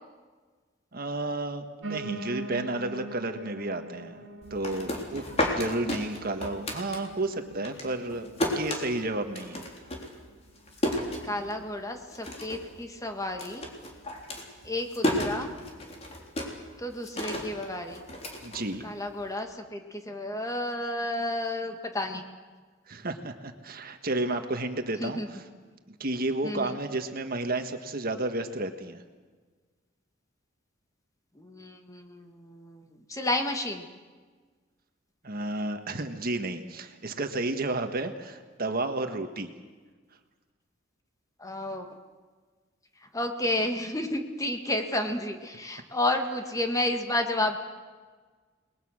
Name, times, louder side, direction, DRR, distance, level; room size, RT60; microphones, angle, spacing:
voice 1, 0.9-4.2 4.5-5.2 5.5-9.6 18.4-18.9 22.9-25.4 25.9-29.0 35.2-39.5, right 2 dB, 50° right, 7 dB, 1.6 m, -32 dB
Piano, 1.8-10.9 11.3-12.5 12.8-12.9 13.1-13.2 13.4-13.5 14.1-14.2, right 3 dB, 70° right, 2.2 m, -44 dB
sound 1, 4.4-7.4 7.6-11.8 12.1-12.7 13.0-19.2, left 1 dB, 35° left, 3.7 m, -32 dB
voice 2, 11.2-13.6 14.6-15.5 16.8-18.0 18.8-22.2 25.0-25.3 26.4-26.8 31.4-33.9 41.4-41.9 43.1-47.6, left 1 dB, 15° left, 5 dB, 1.7 m, -31 dB
29.5 x 20.5 x 6.5 m, 1.4 s
head